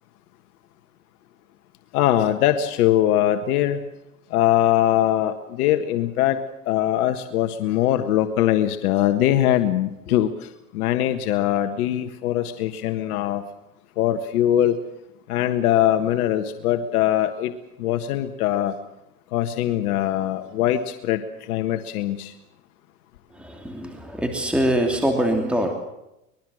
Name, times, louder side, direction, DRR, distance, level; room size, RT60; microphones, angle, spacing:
voice 1, 1.9-3.8 4.3-10.3 10.7-13.4 14.0-14.8 15.3-17.5 17.8-18.7 19.3-21.2 21.5-22.3, left 12 dB, 75° left, 7 dB, 1.7 m, -21 dB
voice 2, 23.3-25.7, right 1 dB, ahead, 3 dB, 2.8 m, -23 dB
24.5 x 21.5 x 6.4 m, 0.89 s
supercardioid pair, 130°, 45 cm